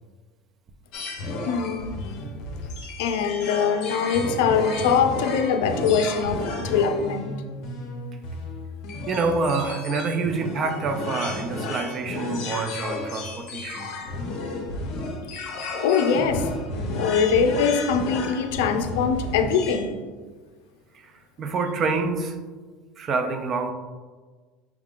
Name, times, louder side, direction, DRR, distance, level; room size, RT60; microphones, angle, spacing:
sound 1, 0.9-19.9, left 2 dB, 45° left, 0.8 m, -32 dB
voice 1, 1.5-2.0 3.0-7.4 15.3-15.5 15.8-16.5 17.0-19.9, left 6 dB, 90° left, 7 dB, 0.4 m, -23 dB
voice 2, 9.1-13.9 20.9-21.1 21.4-22.4 23.0-23.7, right 4 dB, 25° right, 6 dB, 0.3 m, -27 dB
5.8 x 3.6 x 2.4 m, 1.4 s
cardioid pair, 180°, 0 cm